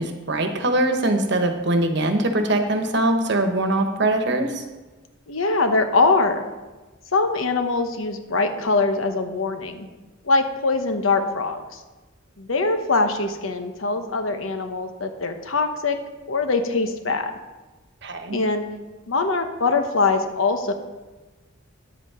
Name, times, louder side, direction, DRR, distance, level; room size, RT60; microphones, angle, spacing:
voice 1, 0.0-4.6 18.0-18.4, right 1 dB, 60° right, 6 dB, 1.1 m, -22 dB
voice 2, 5.3-6.4 7.1-9.9 10.2-11.8 12.4-16.0 16.3-17.3 18.3-18.7 19.1-20.7, left 3 dB, 85° left, 7 dB, 1.0 m, -22 dB
9.7 x 8.1 x 4.9 m, 1.2 s
head